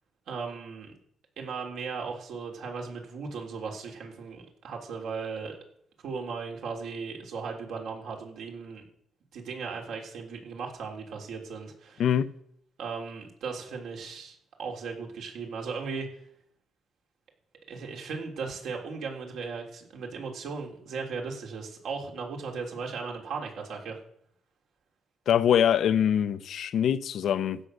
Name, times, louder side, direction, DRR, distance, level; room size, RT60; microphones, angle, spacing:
voice 1, 0.3-0.9 1.4-5.6 6.0-8.8 9.3-12.0 12.8-16.1 17.7-24.0, right 5 dB, 75° right, 3.2 m, -37 dB
voice 2, 12.0-12.3 25.3-27.6, left 9 dB, 70° left, 0.7 m, -24 dB
15.5 x 6.5 x 6.5 m
cardioid pair, 90°, 0 cm